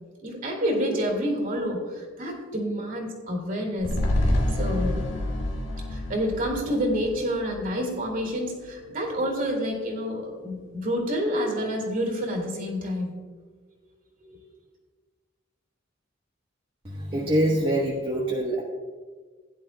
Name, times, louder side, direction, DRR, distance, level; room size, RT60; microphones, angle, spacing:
voice 1, 0.2-4.0 4.5-5.0 5.9-13.2 14.2-14.4, equal, 45° right, 1 dB, 2.4 m, -28 dB
sound 1, 3.8-8.3 8.7-8.8, left 1 dB, 85° left, 1.7 m, -28 dB
voice 2, 16.8-18.6, right 1 dB, 30° right, -3 dB, 1.1 m, -25 dB
16.0 x 10.5 x 2.2 m, 1.4 s
head